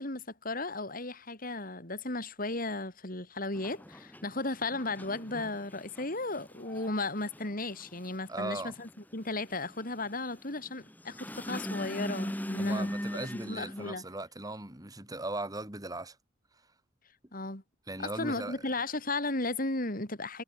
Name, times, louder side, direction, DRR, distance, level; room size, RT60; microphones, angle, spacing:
voice 1, 0.0-14.0 17.3-17.6 18.0-20.4, left 2 dB, 50° left, 4.5 m, -35 dB
sound 1, 3.5-13.9, equal, 10° left, 2.8 m, -39 dB
voice 2, 8.3-8.7 12.6-16.2 17.9-18.6, right 2 dB, 20° right, 3.3 m, -38 dB
head